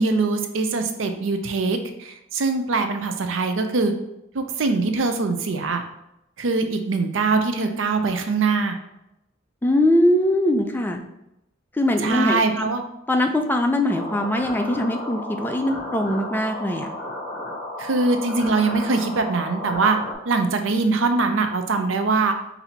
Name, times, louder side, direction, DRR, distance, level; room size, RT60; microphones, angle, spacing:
voice 1, 0.0-3.9 4.3-5.8 6.4-8.8 12.0-12.8 17.8-20.0 20.3-22.3, right 3 dB, 85° right, 7 dB, 0.5 m, -22 dB
voice 2, 9.6-11.0 11.8-12.7 13.1-16.9, left 1 dB, 10° left, 4 dB, 0.4 m, -21 dB
sound 1, 13.9-20.1, left 1 dB, 35° left, 1.1 m, -33 dB
4.1 x 2.7 x 4.4 m, 0.86 s
head